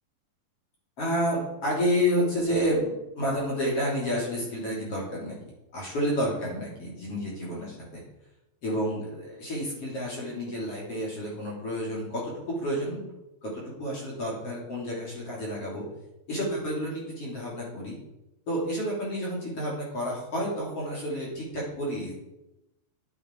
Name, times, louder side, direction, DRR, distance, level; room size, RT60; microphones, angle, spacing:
voice 1, 1.0-5.4 5.7-8.0 8.6-13.1 13.4-15.8 16.3-17.9 18.5-22.1, equal, 35° left, -4 dB, 3.8 m, -30 dB
11.0 x 10.5 x 4.7 m, 0.93 s
omnidirectional pair, 5.1 m